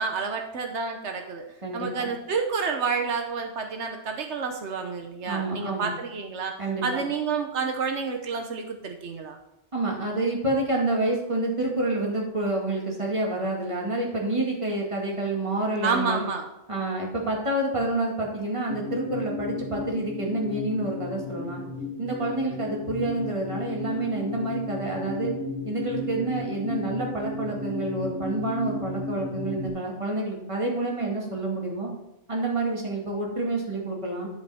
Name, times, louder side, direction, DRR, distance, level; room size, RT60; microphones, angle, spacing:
voice 1, 0.0-1.4 1.7-6.6 6.8-9.4 15.8-16.5, right 5 dB, 85° right, 4 dB, 1.2 m, -29 dB
voice 2, 1.6-2.1 5.3-5.9 6.6-7.0 9.7-16.3 16.7-21.6 22.0-25.3 25.6-31.9 32.3-34.3, right 2 dB, 30° right, -2 dB, 2.1 m, -28 dB
sound 1, 18.7-29.7, left 2 dB, 75° left, 2.0 m, -34 dB
10.5 x 5.4 x 4.3 m, 0.90 s
omnidirectional pair, 1.1 m